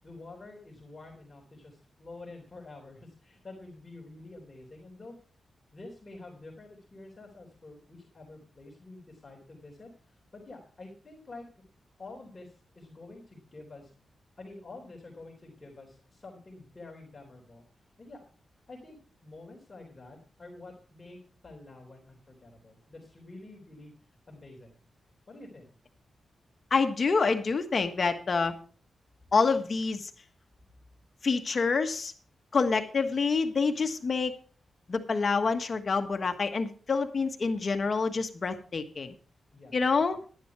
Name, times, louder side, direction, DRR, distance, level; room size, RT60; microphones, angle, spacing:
voice 1, 0.0-5.2 5.7-11.5 12.0-13.9 14.4-17.7 18.0-18.2 18.7-23.9 24.3-24.8 25.3-25.7 38.0-38.2 39.5-40.0, left 2 dB, 25° left, 0 dB, 3.4 m, -48 dB
voice 2, 26.7-28.5 29.3-30.1 31.2-32.1 32.5-34.3 34.9-39.1 39.7-40.2, left 4 dB, 45° left, 7 dB, 1.3 m, -27 dB
11.5 x 10.5 x 4.7 m, 0.40 s
wide cardioid pair, 110°, 0 cm